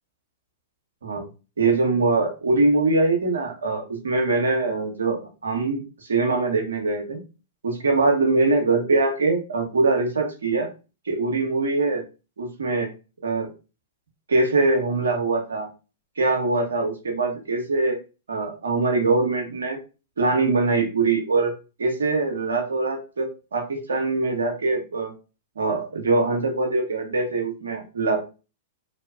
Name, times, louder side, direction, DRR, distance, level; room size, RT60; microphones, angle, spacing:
voice 1, 1.6-5.8 6.1-7.2 7.6-10.7 11.1-12.0 12.4-12.9 13.2-13.5 14.3-15.7 16.2-18.0 18.3-19.8 20.2-21.5 21.8-25.1 25.6-28.2, right 3 dB, 80° right, 3 dB, 0.8 m, -23 dB
2.7 x 2.2 x 2.3 m, 0.31 s
hypercardioid pair, 110°, 0 cm